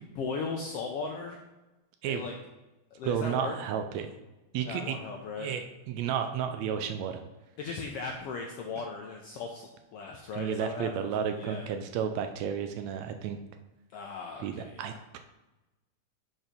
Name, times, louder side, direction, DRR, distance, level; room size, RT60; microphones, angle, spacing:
voice 1, 0.0-1.4 2.0-2.3 2.9-3.6 4.7-5.5 7.6-11.7 13.9-15.0, left 4 dB, 80° left, 1 dB, 1.3 m, -38 dB
voice 2, 3.0-4.1 4.5-5.0 5.4-7.2 10.3-13.4 14.4-15.2, right 8 dB, 80° right, 7 dB, 1.7 m, -32 dB
6.0 x 4.4 x 5.1 m, 1.1 s
omnidirectional pair, 3.3 m